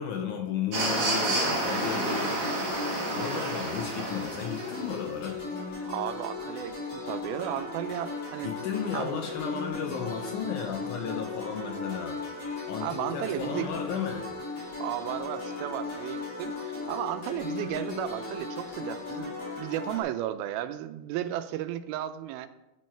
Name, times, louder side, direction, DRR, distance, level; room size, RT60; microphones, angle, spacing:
voice 1, 0.0-2.4 3.1-5.4 8.4-12.2 12.7-14.3, left 7 dB, 75° left, 2 dB, 1.9 m, -34 dB
sound 1, 0.7-4.9, right 2 dB, 45° right, 1.7 m, -29 dB
sound 2, 1.7-20.0, left 3 dB, 35° left, 3.9 m, -37 dB
voice 2, 5.9-8.5 8.9-9.2 12.8-13.7 14.8-22.5, right 12 dB, 90° right, 11 dB, 2.5 m, -34 dB
9.3 x 6.2 x 4.4 m, 0.95 s
omnidirectional pair, 4.2 m